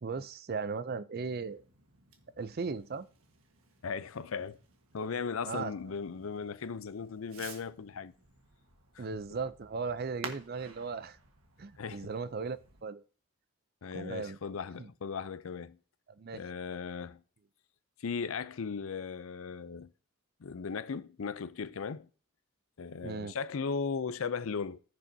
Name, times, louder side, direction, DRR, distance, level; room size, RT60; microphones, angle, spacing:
voice 1, 0.0-1.6 2.4-3.1 5.4-5.7 9.0-11.2 11.6-13.0 13.9-14.4 14.8-14.9 16.2-16.4 23.0-23.3, right 4 dB, 45° right, 0.4 m, -37 dB
Fireworks, 1.4-12.8, right 4 dB, 80° right, 1.5 m, -53 dB
voice 2, 3.8-4.6 4.9-8.1 8.9-9.1 11.8-12.1 13.8-15.8 16.3-17.2 18.0-19.9 20.4-22.1 22.8-24.8, left 5 dB, 75° left, 0.5 m, -37 dB
15.0 x 6.3 x 2.7 m
head